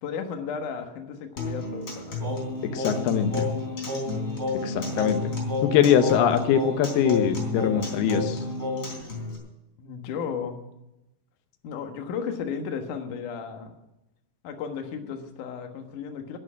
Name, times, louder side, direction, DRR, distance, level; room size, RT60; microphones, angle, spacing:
voice 1, 0.0-2.2 9.8-10.6 11.6-13.7 14.4-16.4, left 6 dB, 60° left, 5 dB, 2.7 m, -34 dB
Acoustic guitar, 1.4-9.4, left 3 dB, 35° left, 4.6 m, -34 dB
Singing, 2.2-9.0, left 2 dB, 5° right, 2.7 m, -31 dB
voice 2, 2.6-3.5 4.6-5.3 5.6-8.4, left 8 dB, 85° left, 8 dB, 2.9 m, -23 dB
11.0 x 11.0 x 8.6 m, 0.91 s
omnidirectional pair, 4.4 m